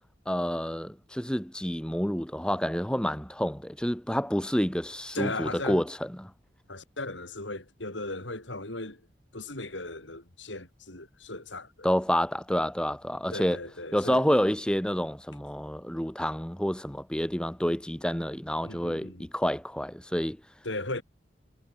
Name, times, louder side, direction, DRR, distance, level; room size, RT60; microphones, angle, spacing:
voice 1, 0.3-6.3 11.8-13.6 13.9-20.4, equal, 5° left, 1.2 m, -28 dB
voice 2, 5.1-5.8 6.7-9.0 9.3-11.9 13.3-14.2 18.6-19.3 20.6-21.0, left 2 dB, 90° left, 6.5 m, -37 dB
head